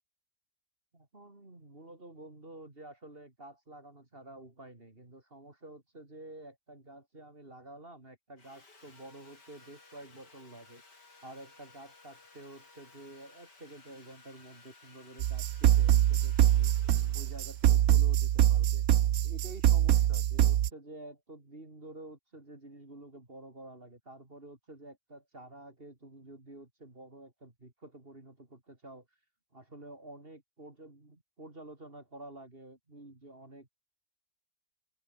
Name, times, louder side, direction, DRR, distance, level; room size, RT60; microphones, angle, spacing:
voice 1, 0.9-16.7 17.1-18.8 19.2-29.1 29.5-33.7, right 2 dB, 35° right, 3.7 m, -50 dB
Sawing, 8.4-19.4, left 3 dB, 85° left, 5.3 m, -58 dB
sound 1, 15.2-20.7, right 12 dB, 65° right, 1.1 m, -24 dB
omnidirectional pair, 1.8 m